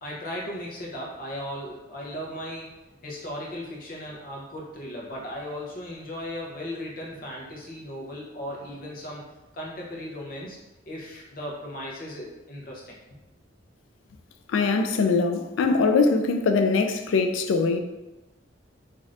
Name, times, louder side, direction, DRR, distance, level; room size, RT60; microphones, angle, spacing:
voice 1, 0.0-2.7 3.0-9.2 9.5-10.6 10.9-13.0, equal, 50° left, 0.7 m, -36 dB
voice 2, 14.5-17.8, left 4 dB, 80° left, 0.3 m, -22 dB
3.2 x 2.5 x 2.5 m
head